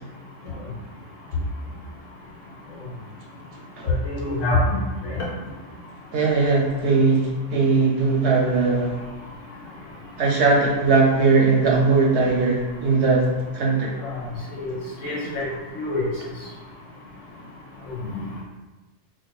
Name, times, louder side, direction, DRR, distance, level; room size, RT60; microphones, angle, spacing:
voice 1, 3.8-4.8 5.2-5.3 14.0-14.2 14.6-14.8 15.0-15.4 15.7-16.0 18.1-18.2, left 2 dB, 80° left, -6 dB, 1.1 m, -24 dB
voice 2, 6.1-9.0 10.2-13.3 13.5-13.9, right 4 dB, 70° right, -2 dB, 0.8 m, -19 dB
4.8 x 2.1 x 2.3 m, 1.2 s
omnidirectional pair, 1.3 m